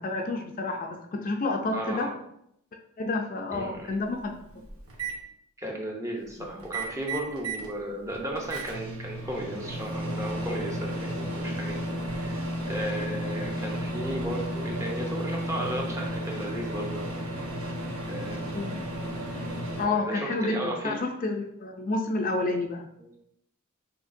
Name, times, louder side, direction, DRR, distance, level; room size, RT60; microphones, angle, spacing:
voice 1, 0.0-2.1 3.0-4.3 18.5-18.9 19.8-22.9, left 3 dB, 40° left, 3 dB, 0.4 m, -29 dB
voice 2, 1.7-2.1 3.5-3.9 5.6-17.0 18.1-18.6 19.8-21.0 23.0-23.1, right 1 dB, 15° right, -1 dB, 0.7 m, -35 dB
Microwave oven, 3.6-3.7 4.2-5.2 6.6-7.7 8.1-19.9, right 1 dB, 75° right, 1.0 m, -33 dB
6.2 x 2.8 x 2.6 m, 0.74 s
head